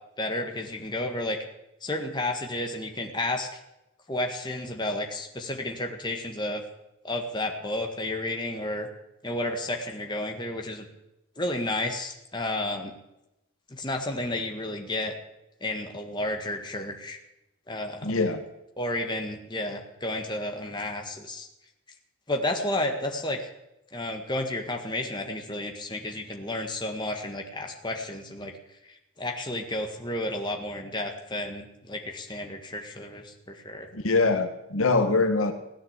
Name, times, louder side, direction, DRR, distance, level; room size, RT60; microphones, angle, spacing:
voice 1, 0.2-1.4 1.8-3.6 4.1-6.6 7.0-8.9 9.2-10.8 11.4-12.9 13.7-15.1 15.6-17.2 17.7-18.1 18.8-21.5 22.3-23.5 23.9-28.5 29.2-33.9, left 1 dB, 20° left, 3 dB, 1.8 m, -31 dB
voice 2, 18.0-18.4 33.9-35.5, left 3 dB, 70° left, 6 dB, 1.6 m, -23 dB
17.5 x 9.9 x 8.1 m, 0.90 s
head